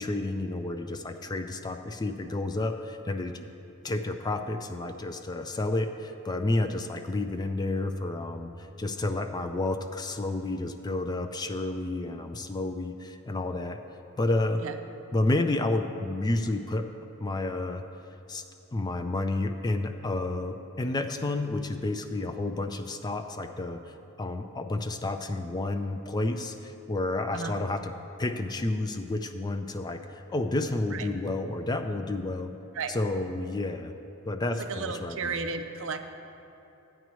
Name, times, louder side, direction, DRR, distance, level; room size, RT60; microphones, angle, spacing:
voice 1, 0.0-3.5 3.8-13.8 14.2-14.6 15.1-16.9 17.2-17.8 18.3-18.4 18.7-27.9 28.2-32.5 32.9-33.9 34.3-35.4, left 2 dB, 20° left, 7 dB, 0.3 m, -30 dB
voice 2, 34.6-36.0, right 5 dB, 65° right, 8 dB, 0.5 m, -33 dB
12.5 x 9.1 x 3.1 m, 2.9 s
head